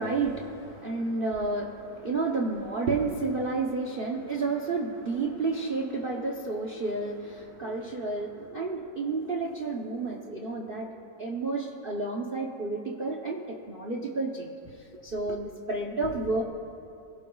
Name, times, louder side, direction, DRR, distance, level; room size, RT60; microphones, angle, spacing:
voice 1, 0.0-16.4, right 3 dB, 85° right, 0 dB, 0.4 m, -31 dB
24.0 x 17.0 x 2.3 m, 3.0 s
omnidirectional pair, 2.3 m